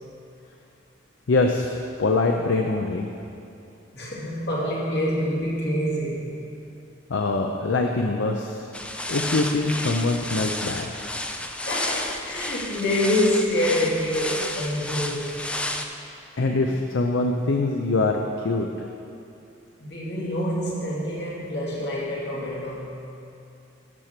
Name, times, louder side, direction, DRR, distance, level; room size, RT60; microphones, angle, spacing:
voice 1, 1.3-3.1 7.1-8.7 9.1-10.9 16.4-18.7, left 3 dB, 75° left, 2 dB, 0.5 m, -23 dB
voice 2, 3.9-6.4 11.7-15.3 18.7-18.8 19.8-23.0, left 1 dB, 60° left, -5 dB, 2.2 m, -26 dB
sound 1, 8.7-15.9, left 1 dB, 5° left, 0.4 m, -31 dB
12.5 x 6.6 x 4.5 m, 2.6 s
head